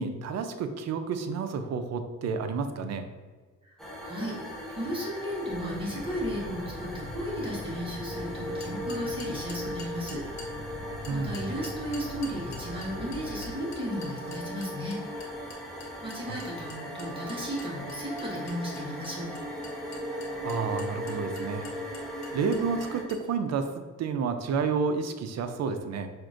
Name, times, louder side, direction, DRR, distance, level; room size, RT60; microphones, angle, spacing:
voice 1, 0.0-3.1 11.1-11.4 16.3-16.4 20.4-21.7 22.3-26.1, right 5 dB, 60° right, 8 dB, 0.5 m, -30 dB
voice 2, 3.6-10.2 11.1-15.0 16.0-19.3, equal, 15° right, -5 dB, 1.2 m, -35 dB
sound 1, 3.8-23.0, equal, ahead, 0.8 m, -38 dB
Insect / Frog, 5.5-13.5, left 1 dB, 30° left, 0.7 m, -43 dB
sound 2, 8.6-10.5 11.0-23.3, left 4 dB, 65° left, 1.0 m, -47 dB
5.9 x 2.5 x 2.5 m, 1.4 s
cardioid pair, 90°, 30 cm